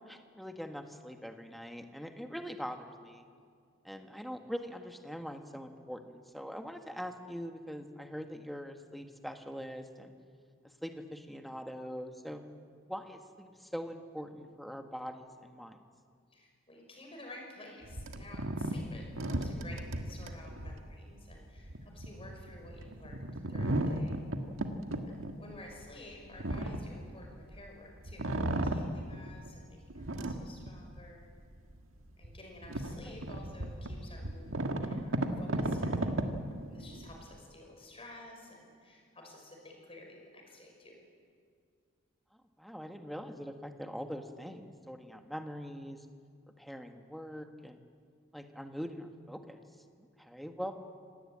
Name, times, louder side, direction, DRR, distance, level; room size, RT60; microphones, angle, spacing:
voice 1, 0.1-3.2 3.8-10.1 10.6-12.4 12.9-15.8 33.0-33.1 42.6-46.1 46.6-47.8 48.3-49.6 50.2-50.7, equal, ahead, 5 dB, 1.5 m, -43 dB
voice 2, 16.3-24.2 25.0-31.3 32.2-36.1 36.7-41.0, left 1 dB, 30° left, 1 dB, 5.7 m, -52 dB
sound 1, 17.8-27.7 28.0-29.5 29.9-31.2 31.7-31.8 32.2-37.3, right 1 dB, 80° right, 1.7 m, -35 dB
26.5 x 19.0 x 8.8 m, 2.1 s
head